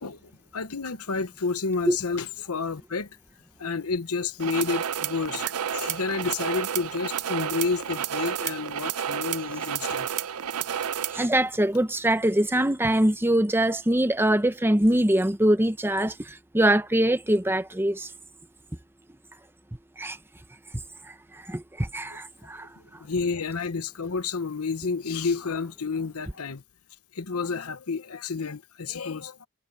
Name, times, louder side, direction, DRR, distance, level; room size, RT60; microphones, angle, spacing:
voice 1, 0.0-3.1 3.6-10.1 22.1-22.2 22.8-26.6 27.1-29.5, left 4 dB, 75° left, 1.0 m, -30 dB
sound 1, 4.4-11.3, right 9 dB, 75° right, 0.6 m, -30 dB
voice 2, 11.1-18.1 20.0-20.2 21.1-22.7, right 1 dB, 10° right, 0.9 m, -23 dB
head